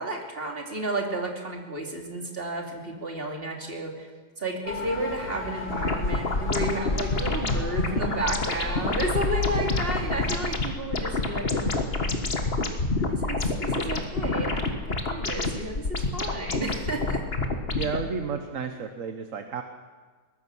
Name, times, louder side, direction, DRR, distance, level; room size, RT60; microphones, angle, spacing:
voice 1, 0.0-4.1 4.4-11.5 12.4-17.2, right 2 dB, 35° right, 1 dB, 3.0 m, -32 dB
Motor vehicle (road) / Siren, 4.7-10.4, left 2 dB, 75° left, 3.8 m, -34 dB
sound 1, 5.7-18.1, left 3 dB, 35° left, 1.8 m, -28 dB
voice 2, 17.7-19.6, right 5 dB, 50° right, 6 dB, 1.4 m, -32 dB
22.5 x 19.5 x 6.2 m, 1.4 s
omnidirectional pair, 1.8 m